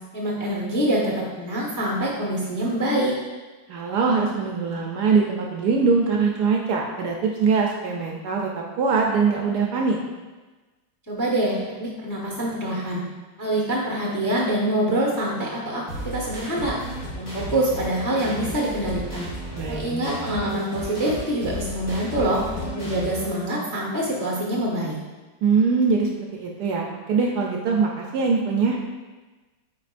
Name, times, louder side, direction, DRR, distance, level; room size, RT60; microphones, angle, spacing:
voice 1, 0.1-3.1 11.1-13.1 13.4-16.8 17.1-19.3 19.7-25.0, right 1 dB, 15° left, -3 dB, 0.6 m, -25 dB
voice 2, 3.7-10.0 19.5-20.1 25.4-28.8, right 5 dB, 70° right, 0 dB, 1.0 m, -22 dB
sound 1, 15.9-23.3, equal, 40° left, 2.4 m, -34 dB
8.4 x 4.6 x 2.5 m, 1.2 s
omnidirectional pair, 2.1 m